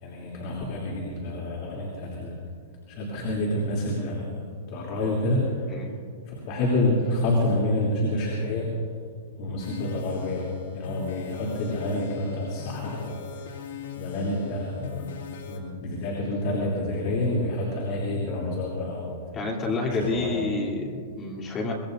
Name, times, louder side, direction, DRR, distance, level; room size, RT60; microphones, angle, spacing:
voice 1, 0.0-2.4 2.9-4.4 4.7-5.4 6.3-8.7 9.4-10.4 10.7-13.2 14.0-19.2 19.9-20.3, left 1 dB, 40° left, -3 dB, 3.2 m, -28 dB
sound 1, 9.6-15.6, left 10 dB, 75° left, 2.9 m, -40 dB
voice 2, 19.3-21.7, left 3 dB, 20° left, -2 dB, 3.1 m, -29 dB
24.0 x 21.0 x 2.7 m, 2.2 s
hypercardioid pair, 155°, 0 cm